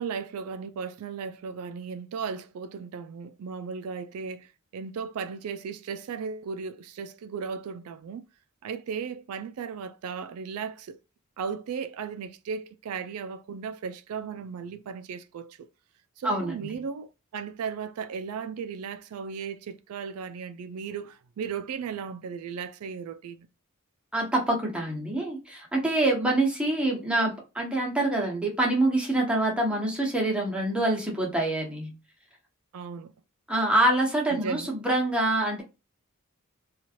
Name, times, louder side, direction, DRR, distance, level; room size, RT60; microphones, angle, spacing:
voice 1, 0.0-8.2 8.6-11.0 11.4-15.7 16.2-23.5 32.7-33.1 34.3-34.7, right 6 dB, 85° right, 0.3 m, -36 dB
voice 2, 16.2-16.6 24.1-31.9 33.5-35.6, right 1 dB, 5° right, 0.9 m, -25 dB
3.0 x 2.4 x 2.7 m
head